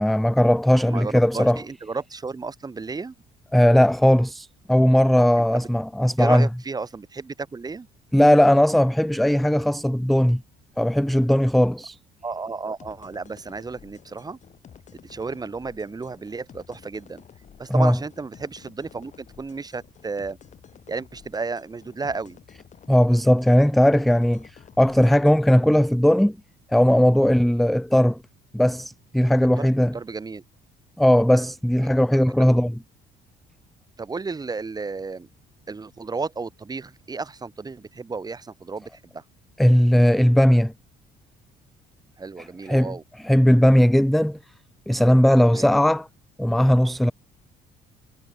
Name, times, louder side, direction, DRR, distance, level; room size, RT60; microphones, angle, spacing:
voice 1, 0.0-1.6 3.5-6.5 8.1-10.4 10.8-12.0 17.7-18.0 22.9-26.4 26.7-28.2 28.5-29.9 31.0-32.7 39.6-40.7 42.4-43.0 43.2-44.4 44.9-46.1 46.4-47.1, equal, ahead, 0.4 m, -18 dB
voice 2, 0.8-3.1 5.4-5.7 6.2-7.9 12.2-14.4 15.0-17.3 17.6-20.4 20.9-22.4 29.6-30.4 32.1-32.6 34.0-35.3 35.7-39.2 42.2-43.0 45.4-45.8, right 4 dB, 25° right, 3.8 m, -33 dB
sound 1, 12.8-25.7, left 8 dB, 45° left, 2.9 m, -51 dB
cardioid pair, 110°, 17 cm